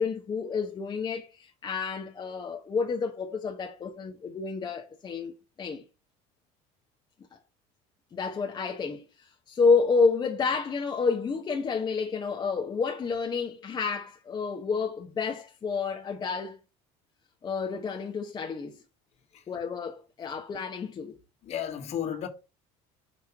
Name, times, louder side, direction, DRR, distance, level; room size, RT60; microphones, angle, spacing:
voice 1, 0.0-5.3 5.6-5.8 7.3-7.4 8.1-16.6 17.4-18.8 19.5-21.2, left 5 dB, 30° left, 0.8 m, -29 dB
voice 2, 21.4-22.3, left 9 dB, 45° left, 1.4 m, -33 dB
5.7 x 3.1 x 5.6 m
supercardioid pair, 115°, 15 cm